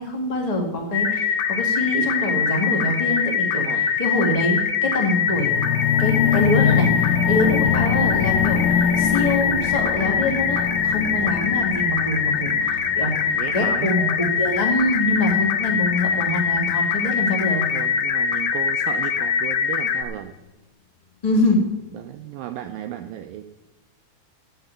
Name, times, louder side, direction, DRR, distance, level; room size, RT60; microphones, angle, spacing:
voice 1, 0.0-17.6 21.2-21.6, left 1 dB, 25° left, 1 dB, 0.9 m, -24 dB
sound 1, 0.9-20.0, left 7 dB, 70° left, 2.6 m, -23 dB
voice 2, 3.5-3.9 7.7-7.8 11.1-11.5 13.4-13.9 15.2-15.3 17.7-20.4 21.9-23.4, right 12 dB, 85° right, 7 dB, 2.0 m, -35 dB
sound 2, 5.3-15.4 16.1-16.2, left 8 dB, 85° left, 2.1 m, -25 dB
8.9 x 7.8 x 9.1 m, 1.1 s
omnidirectional pair, 4.7 m